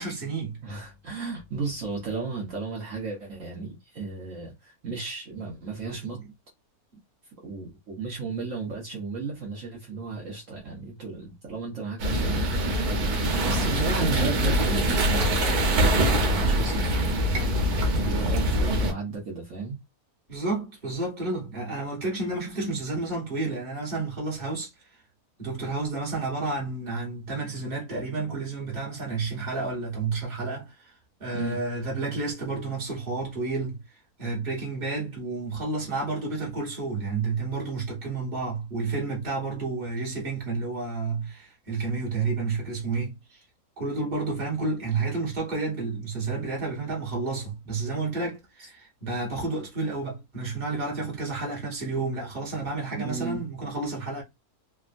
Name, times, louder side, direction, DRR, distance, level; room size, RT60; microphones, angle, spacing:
voice 1, 0.0-0.6 6.2-6.3 20.3-24.7 25.4-30.9 31.2-33.8 34.2-43.4 43.8-54.2, right 3 dB, 30° right, 1.5 m, -30 dB
voice 2, 0.6-6.2 7.4-19.8 31.3-31.6 53.0-53.4, right 4 dB, 60° right, 1.2 m, -34 dB
sound 1, 12.0-18.9, equal, 80° right, 1.3 m, -24 dB
3.4 x 2.3 x 2.5 m
omnidirectional pair, 1.6 m